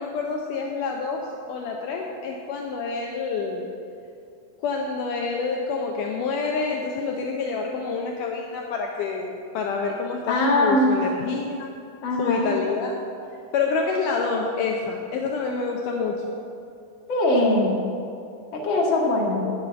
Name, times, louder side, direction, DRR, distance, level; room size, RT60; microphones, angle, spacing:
voice 1, 0.0-3.7 4.6-11.7 12.2-13.1 13.5-16.2 19.3-19.5, left 4 dB, 75° left, 1 dB, 2.1 m, -27 dB
voice 2, 10.3-10.9 12.0-12.6 17.1-17.8 18.5-19.4, left 1 dB, 40° left, -2 dB, 2.0 m, -21 dB
8.5 x 7.2 x 8.8 m, 2.5 s
omnidirectional pair, 4.0 m